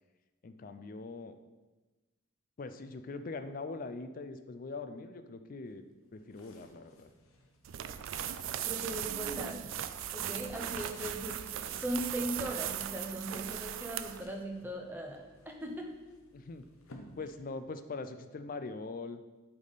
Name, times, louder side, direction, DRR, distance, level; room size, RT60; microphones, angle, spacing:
voice 1, 0.4-1.3 2.6-5.8 6.1-7.1 16.3-16.6 17.2-19.2, left 3 dB, 40° left, 9 dB, 0.4 m, -42 dB
sound 1, 5.7-17.8, left 1 dB, 90° left, 0.8 m, -59 dB
sound 2, 7.6-14.3, right 10 dB, 70° right, 0.3 m, -38 dB
voice 2, 8.7-9.7 10.1-15.9, right 1 dB, 10° right, 1 dB, 0.7 m, -39 dB
8.2 x 3.6 x 4.0 m, 1.2 s
head